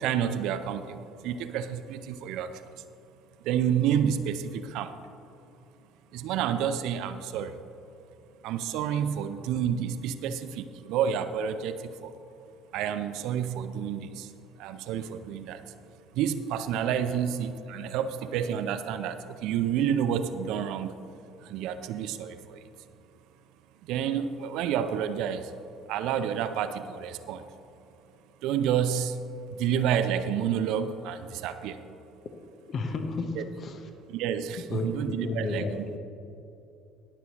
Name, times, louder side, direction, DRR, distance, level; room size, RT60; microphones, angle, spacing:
voice 1, 0.0-2.7 3.4-5.0 6.1-7.6 8.4-12.1 12.7-14.3 14.6-15.6 16.2-20.9 21.4-22.6 23.8-25.6 25.9-27.4 28.4-29.2 29.5-31.8 33.4-33.5 34.1-35.8, right 8 dB, 60° right, 10 dB, 0.5 m, -29 dB
voice 2, 32.7-33.8 34.7-36.0, left 3 dB, 45° left, 6 dB, 0.9 m, -33 dB
20.0 x 6.8 x 3.0 m, 2.8 s
figure-of-eight pair, 60°, 0 cm